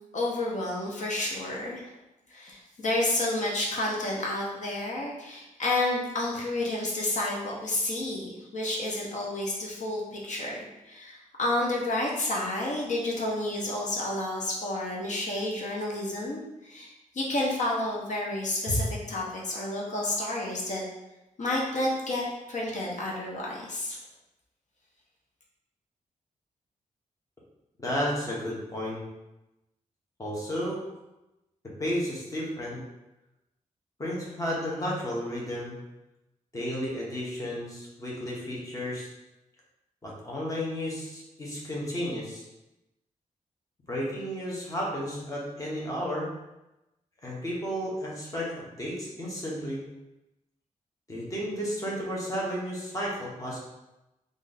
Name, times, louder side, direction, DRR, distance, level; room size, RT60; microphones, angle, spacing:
voice 1, 0.1-1.9 2.3-20.8 21.4-24.0, left 1 dB, 65° left, -3 dB, 0.8 m, -30 dB
voice 2, 27.8-29.0 30.2-30.8 31.8-32.8 34.0-35.8 36.5-39.1 40.0-42.4 43.9-46.3 47.2-49.8 51.1-53.6, equal, 25° left, -4 dB, 1.1 m, -32 dB
3.2 x 2.5 x 4.0 m, 0.95 s
wide cardioid pair, 125°, 14 cm